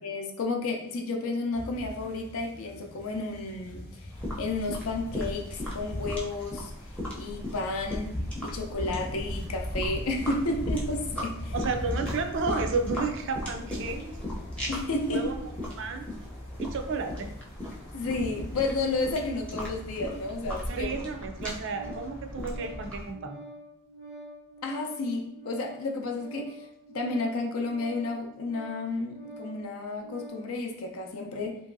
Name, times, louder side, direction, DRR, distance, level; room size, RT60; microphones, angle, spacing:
voice 1, 0.0-4.1 4.4-5.5 5.7-6.7 7.1-11.5 14.7-15.5 17.9-20.9 24.6-26.7 26.9-31.6, left 2 dB, 70° left, 2 dB, 0.5 m, -32 dB
sound 1, 1.5-20.9, left 1 dB, 30° left, 0.8 m, -41 dB
walking fast on the street, 4.1-23.1, left 1 dB, 5° left, 0.6 m, -37 dB
voice 2, 11.5-14.2 15.1-15.4 15.8-16.1 16.6-17.3 20.7-23.4, right 4 dB, 60° right, 5 dB, 0.4 m, -32 dB
Organ, 21.5-30.5, right 1 dB, 85° right, 1.0 m, -47 dB
2.9 x 2.6 x 2.6 m, 0.77 s
head